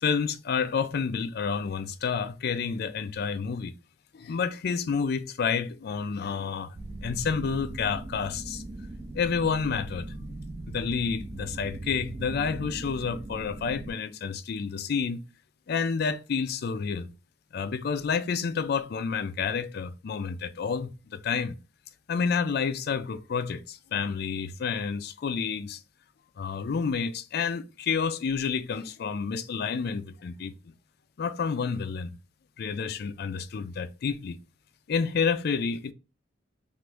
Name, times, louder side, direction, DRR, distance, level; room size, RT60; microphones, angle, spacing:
voice 1, 0.0-3.7 4.1-6.8 7.0-8.6 9.1-10.1 10.7-15.2 15.7-17.1 17.5-21.6 22.1-25.8 26.4-30.5 31.2-32.1 32.6-34.4 34.9-35.9, left 6 dB, 60° left, 0.4 m, -29 dB
sound 1, 6.7-13.9, right 2 dB, 25° right, 0.4 m, -39 dB
3.0 x 2.5 x 3.4 m
head